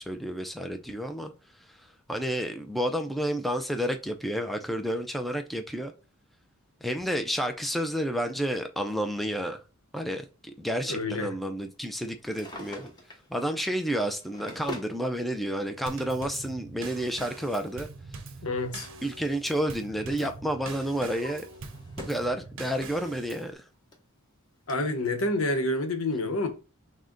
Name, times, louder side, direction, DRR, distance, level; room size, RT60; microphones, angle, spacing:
voice 1, 0.0-1.3 2.1-5.9 6.8-9.6 9.9-12.9 13.3-17.9 19.0-21.4 22.0-23.7, equal, ahead, 0.4 m, -30 dB
voice 2, 10.9-11.3 18.4-18.9 20.2-20.3 24.7-26.5, left 2 dB, 85° left, 0.9 m, -28 dB
Drawer open or close, 12.2-13.3 14.0-15.0 16.1-16.2 17.9-19.5 19.8-20.1 20.7-22.3 22.8-22.9 23.6-23.7 23.9-24.0 24.7-24.8, equal, 20° left, 0.9 m, -44 dB
Drum kit / Snare drum / Bass drum, 15.9-23.5, right 3 dB, 60° right, 0.6 m, -43 dB
6.2 x 2.1 x 3.8 m
head